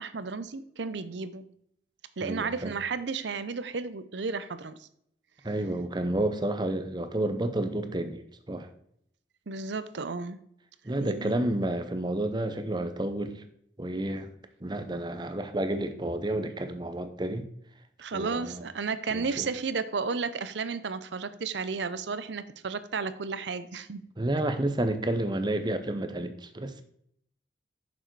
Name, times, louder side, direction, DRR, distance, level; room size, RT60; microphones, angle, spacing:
voice 1, 0.0-1.5 2.2-4.9 9.5-10.4 10.9-11.3 18.0-24.0, right 4 dB, 75° right, 14 dB, 0.6 m, -33 dB
voice 2, 2.2-2.7 5.4-8.7 10.8-13.4 13.8-14.3 14.6-17.5 18.1-18.6 19.1-19.5 24.2-26.8, right 1 dB, 25° right, 9 dB, 0.7 m, -30 dB
6.7 x 6.3 x 4.6 m, 0.71 s
head